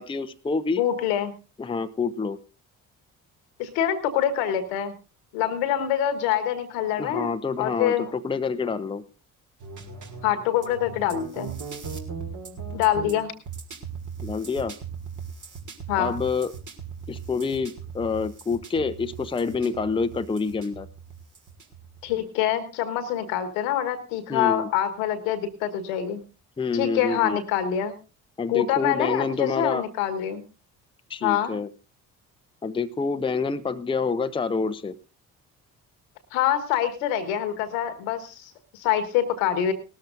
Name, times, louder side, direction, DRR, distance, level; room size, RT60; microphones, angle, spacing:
voice 1, 0.0-0.8 1.6-2.4 7.0-9.0 14.2-14.7 16.0-16.5 17.1-20.9 24.3-24.7 26.6-27.4 28.4-29.8 31.1-31.7 32.6-34.9, left 4 dB, 10° left, 9 dB, 0.7 m, -27 dB
voice 2, 0.8-1.3 3.6-4.9 5.3-7.3 7.6-8.1 10.2-11.5 12.7-13.3 15.9-16.2 22.0-26.2 26.7-28.0 28.5-30.4 31.2-31.5 36.3-39.7, left 10 dB, 75° left, 10 dB, 1.4 m, -25 dB
sound 1, 9.6-22.1, right 5 dB, 45° right, 2.2 m, -39 dB
18.5 x 13.0 x 2.5 m, 0.31 s
figure-of-eight pair, 45°, 42 cm